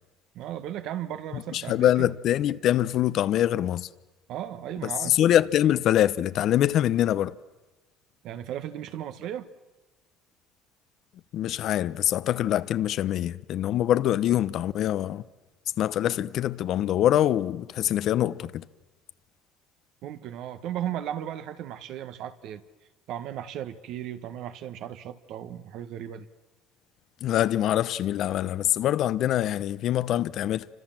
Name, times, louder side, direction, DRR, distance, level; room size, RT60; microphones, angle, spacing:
voice 1, 0.3-2.1 4.3-5.2 8.2-9.5 20.0-22.6 23.1-26.3, right 11 dB, 65° right, 1.6 m, -36 dB
voice 2, 1.3-3.9 4.8-7.4 11.3-15.2 15.8-18.7 27.2-30.7, left 12 dB, 55° left, 0.9 m, -24 dB
29.5 x 25.5 x 7.6 m
cardioid pair, 125°, 0 cm